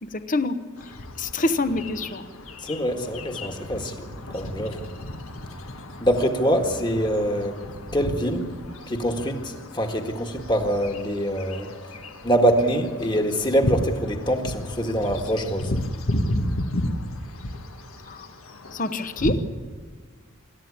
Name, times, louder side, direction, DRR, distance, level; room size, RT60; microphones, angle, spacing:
voice 1, 0.0-0.6 1.2-2.3 18.1-18.2 18.7-19.4, left 2 dB, 35° left, 11 dB, 1.0 m, -26 dB
sound 1, 0.8-19.3, left 1 dB, 75° left, 1.7 m, -33 dB
voice 2, 2.6-4.1 4.3-4.8 6.0-7.5 7.9-8.5 8.9-11.7 12.2-15.7, equal, 20° left, 5 dB, 1.8 m, -24 dB
26.0 x 13.0 x 8.7 m, 1.5 s
head